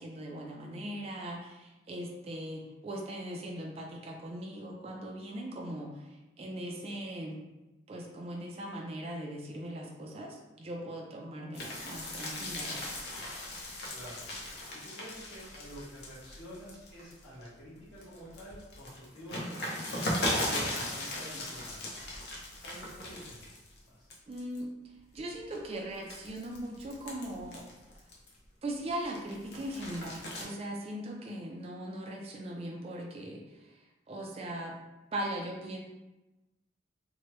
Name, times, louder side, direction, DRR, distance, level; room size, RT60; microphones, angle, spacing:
voice 1, 0.0-7.4 7.9-12.9 24.3-24.7 25.1-27.7 28.6-34.8 35.1-35.8, right 1 dB, 30° right, -1 dB, 0.3 m, -39 dB
sound 1, 11.5-17.5 17.9-23.8 24.1-24.6 25.1-28.4 28.9-30.4, left 1 dB, 55° left, 0.6 m, -38 dB
voice 2, 13.9-14.3 14.7-22.0 22.6-23.4 23.8-24.1, equal, 75° left, -11 dB, 1.4 m, -48 dB
2.9 x 2.2 x 3.0 m, 1.0 s
head